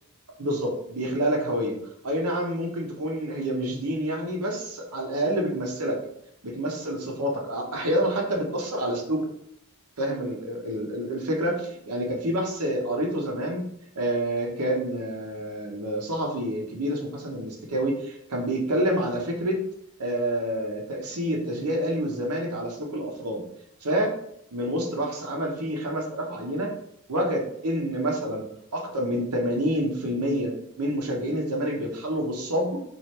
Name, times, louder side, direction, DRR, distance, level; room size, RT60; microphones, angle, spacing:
voice 1, 0.4-1.8 2.0-6.0 6.4-9.3 10.0-13.6 14.0-19.6 20.0-23.4 23.8-24.1 24.5-26.7 27.1-28.4 28.7-32.8, right 1 dB, 90° right, 0 dB, 0.9 m, -28 dB
3.2 x 2.7 x 4.3 m, 0.73 s
head